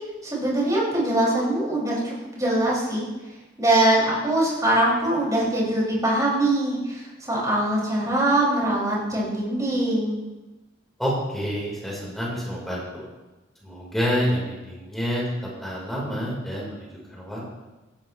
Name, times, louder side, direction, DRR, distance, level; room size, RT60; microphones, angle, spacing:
voice 1, 0.2-3.1 3.6-10.3, right 1 dB, 20° right, -5 dB, 5.9 m, -22 dB
voice 2, 11.0-13.1 13.6-15.2 15.6-17.6, equal, ahead, -5 dB, 4.2 m, -28 dB
17.0 x 15.5 x 3.2 m, 1.1 s
head